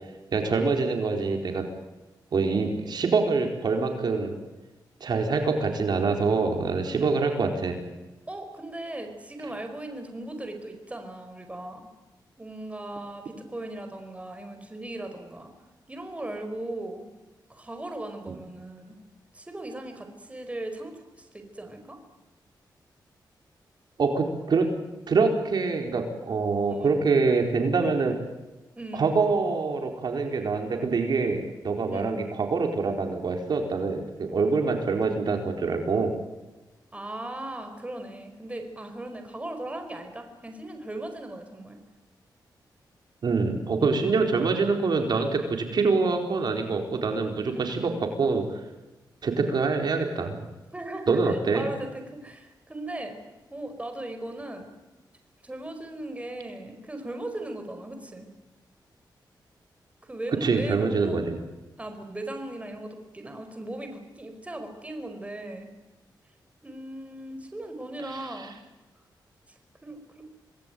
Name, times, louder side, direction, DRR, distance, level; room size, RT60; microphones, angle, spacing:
voice 1, 0.3-1.7 2.3-4.3 5.0-7.8 18.3-18.4 24.0-24.7 25.1-28.2 28.9-36.1 43.2-48.4 49.2-50.4 51.1-51.7 60.4-61.4 68.0-68.5, right 4 dB, 65° right, 4 dB, 4.3 m, -25 dB
voice 2, 8.3-11.9 12.4-15.5 15.9-17.0 17.5-19.0 19.3-22.0 26.7-27.0 28.8-29.2 31.9-32.2 36.9-41.8 43.8-44.0 47.3-48.0 50.7-53.2 53.5-54.7 55.4-58.3 60.0-61.2 61.8-65.7 66.6-68.6 69.5-70.3, right 1 dB, 15° right, 5 dB, 5.0 m, -38 dB
27.0 x 19.5 x 9.2 m, 1.1 s
cardioid pair, 90°, 8 cm